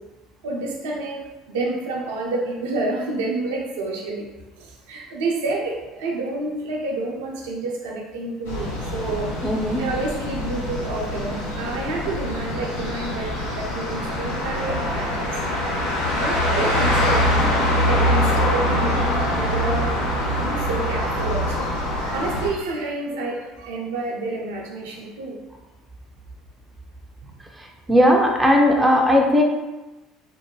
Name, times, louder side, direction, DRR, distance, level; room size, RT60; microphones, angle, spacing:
voice 1, 0.4-1.2 1.5-4.2 4.9-9.3 9.8-15.2 16.2-17.2 17.8-19.0 19.3-19.9 20.4-21.7 22.0-25.4, right 2 dB, 70° right, -2 dB, 0.5 m, -29 dB
sound 1, 8.5-22.5, left 1 dB, 75° left, 0.6 m, -24 dB
voice 2, 9.4-9.8 27.9-29.4, equal, 10° right, 1 dB, 0.5 m, -17 dB
2.5 x 2.1 x 2.9 m, 1.1 s
figure-of-eight pair, 65°, 0 cm